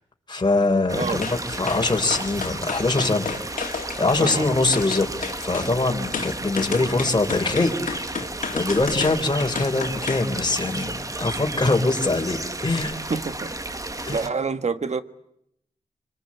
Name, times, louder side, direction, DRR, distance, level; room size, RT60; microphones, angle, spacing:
voice 1, 0.3-5.1 5.4-8.2 8.5-12.9 14.1-14.2, left 2 dB, 35° left, 4.0 m, -23 dB
sound 1, 0.9-14.3, right 2 dB, 25° right, 1.5 m, -33 dB
voice 2, 0.9-1.2 4.2-4.6 13.1-13.7 14.1-15.0, right 4 dB, 55° right, 1.5 m, -28 dB
sound 2, 1.2-1.4 1.7-4.4 4.7-5.7 6.1-10.3 10.6-10.8, left 5 dB, 80° left, 2.3 m, -31 dB
25.5 x 25.0 x 8.8 m
wide cardioid pair, 75°, 14 cm